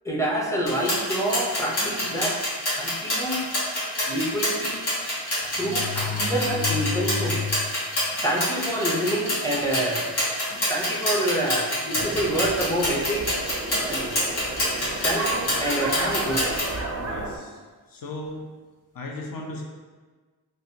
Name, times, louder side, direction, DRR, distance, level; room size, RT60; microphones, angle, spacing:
voice 1, 0.0-2.4 2.7-3.5 4.1-4.8 5.6-7.4 8.2-10.1 10.7-13.4 13.9-14.3 15.0-16.6, right 1 dB, 5° left, -3 dB, 0.7 m, -27 dB
sound 1, 0.7-16.7, left 1 dB, 70° left, 1.4 m, -27 dB
sound 2, 1.8-2.1 2.8-2.9 3.2-3.3 4.6-4.7 5.4-7.7 8.1-8.2 9.0-9.1 9.5-9.9 10.5-10.7 11.9-12.8 13.7-14.0, left 4 dB, 30° left, 1.0 m, -32 dB
sound 3, 12.0-17.4, right 2 dB, 40° right, 0.4 m, -32 dB
voice 2, 17.0-17.5 17.9-18.4 18.9-19.6, left 2 dB, 55° left, 0 dB, 0.7 m, -36 dB
3.3 x 2.6 x 2.8 m, 1.4 s
cardioid pair, 65°, 41 cm